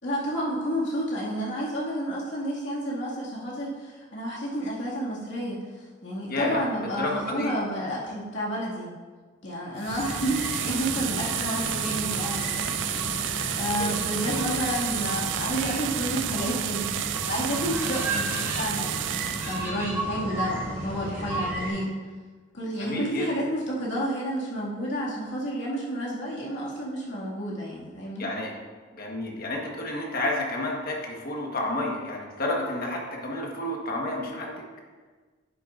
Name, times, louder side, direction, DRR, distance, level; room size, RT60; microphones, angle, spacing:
voice 1, 0.0-8.9 9.4-12.7 13.5-22.0 22.5-28.3, equal, 65° left, -5 dB, 2.1 m, -30 dB
voice 2, 6.3-7.5 13.8-13.9 22.8-23.3 28.2-28.5 28.9-34.5, left 1 dB, 50° left, -1 dB, 1.4 m, -30 dB
sound 1, 9.8-19.7, right 12 dB, 65° right, 0.3 m, -31 dB
sound 2, 9.9-21.7, right 2 dB, 15° right, 2.2 m, -33 dB
10.0 x 7.6 x 2.5 m, 1.4 s
head